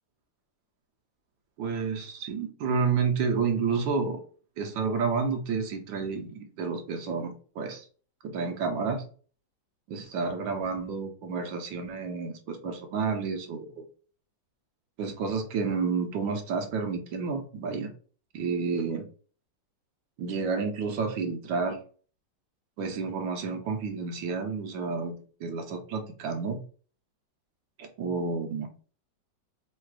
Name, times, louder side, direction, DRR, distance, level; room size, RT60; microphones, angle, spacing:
voice 1, 1.6-4.2 4.6-7.8 8.2-9.0 9.9-13.8 15.0-17.9 18.3-19.1 20.2-21.8 22.8-26.6 27.8-28.7, right 5 dB, 80° right, 5 dB, 1.5 m, -30 dB
3.7 x 2.4 x 4.5 m, 0.42 s
omnidirectional pair, 2.1 m